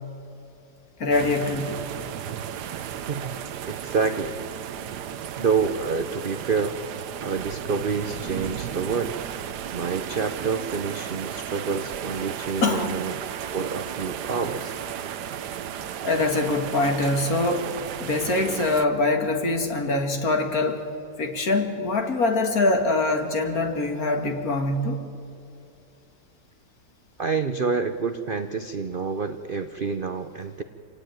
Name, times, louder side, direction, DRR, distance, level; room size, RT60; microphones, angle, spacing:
voice 1, 1.0-1.8 12.6-12.9 16.0-17.7 18.0-20.8 21.2-25.0, left 2 dB, 55° left, 5 dB, 2.4 m, -24 dB
sound 1, 1.1-18.9, right 9 dB, 70° right, 1.4 m, -34 dB
voice 2, 3.1-3.4 3.7-4.4 5.4-6.7 7.2-9.2 9.7-13.1 13.5-14.8 27.2-30.6, right 5 dB, 50° right, 9 dB, 0.6 m, -28 dB
27.0 x 17.5 x 9.2 m, 2.6 s
omnidirectional pair, 1.9 m